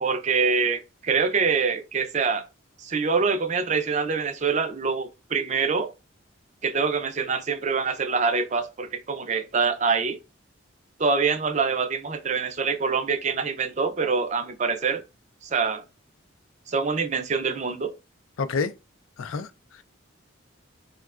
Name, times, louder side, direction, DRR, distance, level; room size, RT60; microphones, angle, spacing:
voice 1, 0.0-2.4 2.8-5.9 6.6-10.2 11.0-15.0 15.5-15.8 16.7-17.9, right 5 dB, 35° right, 0.4 m, -25 dB
voice 2, 18.4-18.7 19.2-19.8, left 4 dB, 80° left, 0.4 m, -29 dB
4.5 x 2.1 x 2.3 m
head